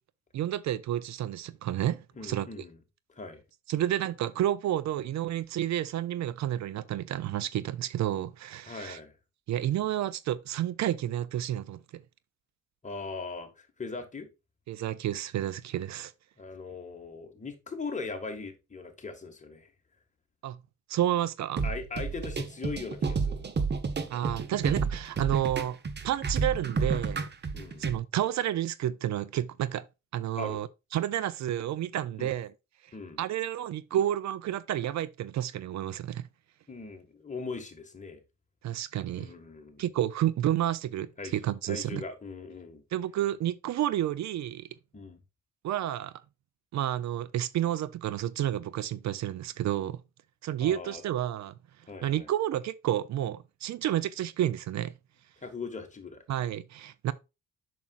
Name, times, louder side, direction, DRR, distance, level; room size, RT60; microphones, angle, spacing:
voice 1, 0.3-2.5 3.7-9.0 9.5-12.0 14.7-16.1 20.4-20.6 20.9-21.6 24.1-25.8 26.0-27.3 27.8-29.8 30.1-30.7 30.9-32.5 33.2-36.3 38.6-39.3 39.8-42.0 42.9-44.7 45.6-46.1 46.7-50.0 50.4-51.5 52.0-54.9 56.3-57.1, right 12 dB, 65° right, 0.5 m, -30 dB
voice 2, 2.1-2.8 3.1-3.4 8.7-9.1 12.8-14.3 16.4-19.7 21.6-23.5 27.5-27.9 30.4-30.6 32.2-32.4 32.9-33.2 36.7-38.2 39.2-39.8 41.2-41.4 41.6-42.8 44.9-45.2 50.6-51.0 51.9-52.3 55.4-56.2, left 4 dB, 25° left, 1.8 m, -40 dB
sound 1, 21.6-28.0, right 4 dB, 35° right, 1.0 m, -31 dB
7.1 x 6.1 x 2.4 m
cardioid pair, 90°, 30 cm